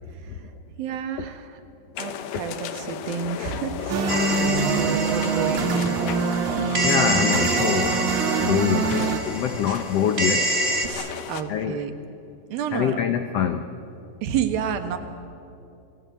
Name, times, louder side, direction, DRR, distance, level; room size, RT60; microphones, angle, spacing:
voice 1, 0.8-1.6 2.0-5.9 9.7-9.8 10.8-11.9 12.5-13.0 14.2-15.0, right 7 dB, 80° right, 7 dB, 3.3 m, -30 dB
sound 1, 2.0-11.4, left 9 dB, 70° left, 2.5 m, -35 dB
sound 2, 3.9-9.2, right 5 dB, 60° right, 2.9 m, -24 dB
sound 3, 4.1-6.4 6.7-10.9, right 1 dB, 25° right, 1.6 m, -27 dB
voice 2, 6.8-8.0 8.4-10.5 11.5-11.8 12.7-13.6, left 9 dB, 90° left, 8 dB, 1.3 m, -24 dB
29.0 x 20.5 x 8.4 m, 2.7 s
omnidirectional pair, 4.1 m